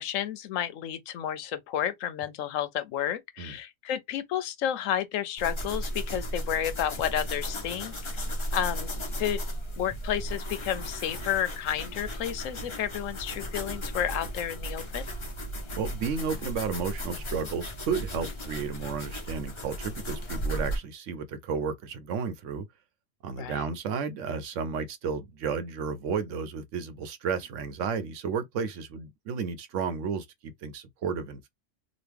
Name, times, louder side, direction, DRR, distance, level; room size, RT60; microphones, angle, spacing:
voice 1, 0.0-8.2 8.5-8.9 9.2-9.4 9.8-15.1 23.4-23.6, left 10 dB, 80° left, 1.0 m, -31 dB
sound 1, 5.4-20.8, equal, 30° left, 0.5 m, -35 dB
voice 2, 15.7-22.6 23.2-31.5, right 6 dB, 75° right, 0.9 m, -32 dB
3.0 x 2.3 x 3.3 m
omnidirectional pair, 1.3 m